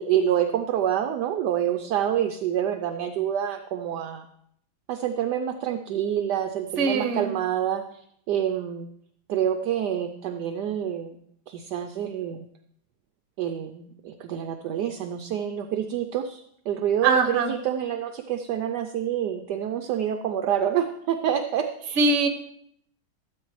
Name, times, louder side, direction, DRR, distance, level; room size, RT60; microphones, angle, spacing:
voice 1, 0.0-4.3 4.9-7.8 8.3-8.9 9.3-11.2 11.5-12.5 13.4-22.0, right 10 dB, 75° right, 6 dB, 1.0 m, -27 dB
voice 2, 6.8-7.3 17.0-17.5 22.0-22.3, right 4 dB, 45° right, 7 dB, 1.1 m, -22 dB
13.0 x 8.2 x 3.1 m, 0.70 s
omnidirectional pair, 2.1 m